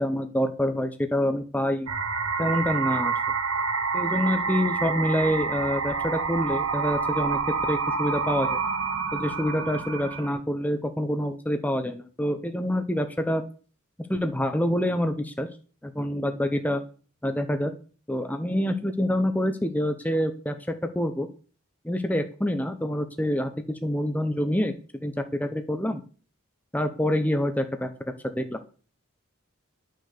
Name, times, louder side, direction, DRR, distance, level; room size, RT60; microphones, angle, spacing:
voice 1, 0.0-1.9 2.4-3.1 3.9-7.4 7.7-8.6 9.1-13.4 14.1-15.5 15.8-16.8 17.2-17.7 18.1-21.3 21.8-26.0 26.7-27.9 28.4-28.6, equal, 5° left, 6 dB, 0.8 m, -26 dB
sound 1, 1.9-10.3, right 5 dB, 85° right, 1.7 m, -28 dB
11.5 x 6.5 x 6.7 m, 0.39 s
head